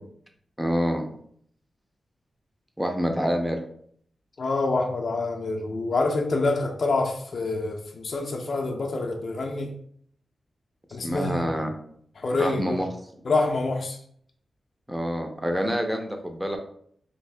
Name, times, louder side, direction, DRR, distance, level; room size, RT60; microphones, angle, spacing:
voice 1, 0.6-1.1 2.8-3.6 11.0-11.7 12.4-12.9 14.9-16.6, equal, 5° right, 4 dB, 0.5 m, -26 dB
voice 2, 4.4-9.7 10.9-11.5 12.2-12.8 13.2-14.0, left 3 dB, 50° left, 1 dB, 0.4 m, -26 dB
3.0 x 2.7 x 3.3 m, 0.63 s
wide cardioid pair, 140°, 0 cm